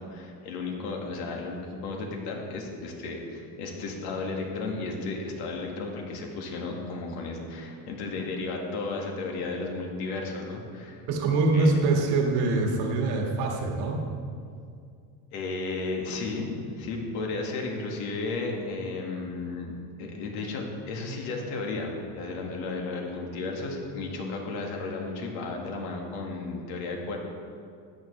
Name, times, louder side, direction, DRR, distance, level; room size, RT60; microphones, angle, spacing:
voice 1, 0.1-11.0 11.5-11.7 15.3-16.5 16.7-19.7 20.0-27.2, left 3 dB, 80° left, 0 dB, 2.0 m, -34 dB
voice 2, 11.1-14.0, right 3 dB, 75° right, 1 dB, 1.9 m, -24 dB
13.5 x 9.4 x 3.3 m, 2.3 s
supercardioid pair, 115°, 44 cm